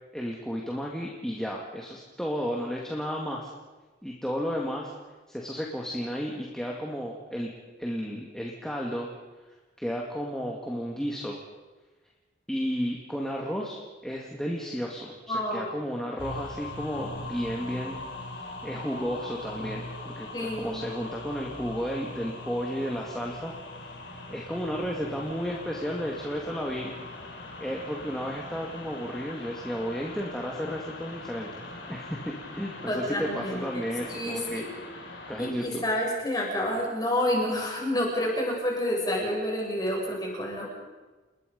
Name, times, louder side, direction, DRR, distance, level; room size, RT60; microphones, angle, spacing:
voice 1, 0.1-3.5 4.0-4.9 5.3-7.5 7.8-9.1 9.5-11.4 12.5-18.0 18.3-23.5 23.8-23.9 24.3-26.9 27.6-31.6 31.9-34.6 35.3-35.8, equal, 5° left, -2 dB, 2.2 m, -33 dB
voice 2, 15.3-15.6 20.3-20.8 32.9-33.8 34.1-34.6 35.4-40.7, left 1 dB, 20° left, -2 dB, 7.1 m, -29 dB
sound 1, 16.2-35.5, left 2 dB, 70° left, 4.9 m, -41 dB
29.5 x 21.0 x 5.4 m, 1.2 s
head